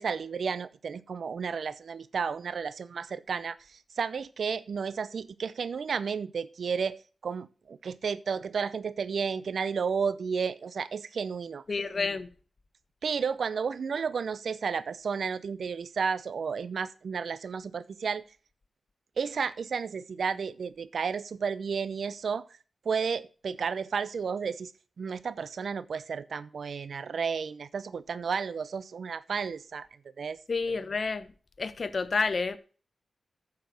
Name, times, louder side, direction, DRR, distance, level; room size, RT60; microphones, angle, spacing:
voice 1, 0.0-11.6 13.0-18.2 19.2-22.5 22.8-24.7 25.0-29.9 30.2-30.4, right 6 dB, 75° right, 0.7 m, -32 dB
voice 2, 11.7-12.3 30.5-31.3 31.6-32.6, left 4 dB, 55° left, 1.1 m, -29 dB
9.5 x 7.0 x 6.4 m
cardioid pair, 60°, 0 cm